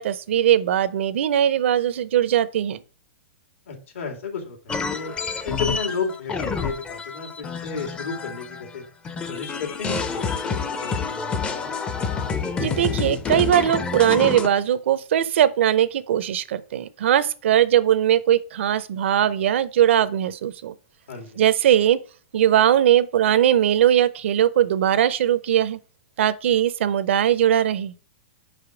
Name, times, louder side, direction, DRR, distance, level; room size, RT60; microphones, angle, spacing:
voice 1, 0.0-2.8 12.6-20.7 21.4-22.0 22.3-25.8 26.2-27.9, right 10 dB, 70° right, 0.6 m, -20 dB
voice 2, 3.7-5.1 5.4-8.8 9.3-11.7 21.1-21.4, left 5 dB, 80° left, 2.5 m, -33 dB
sound 1, 4.7-8.8 9.0-14.5, left 5 dB, 15° left, 0.6 m, -28 dB
5.5 x 5.0 x 5.0 m
hypercardioid pair, 150°, 7 cm